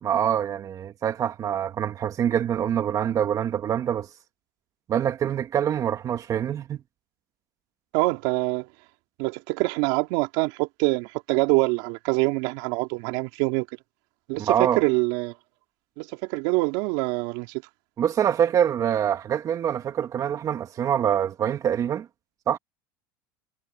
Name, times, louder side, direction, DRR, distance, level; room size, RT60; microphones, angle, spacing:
voice 1, 0.0-4.1 4.9-6.8 14.4-14.8 18.0-22.1 22.5-22.6, right 9 dB, 40° right, 1.8 m, -25 dB
voice 2, 7.9-8.7 9.2-13.7 14.3-15.3 16.0-17.6, right 25 dB, 70° right, 3.3 m, -25 dB
supercardioid pair, 105°, 9 cm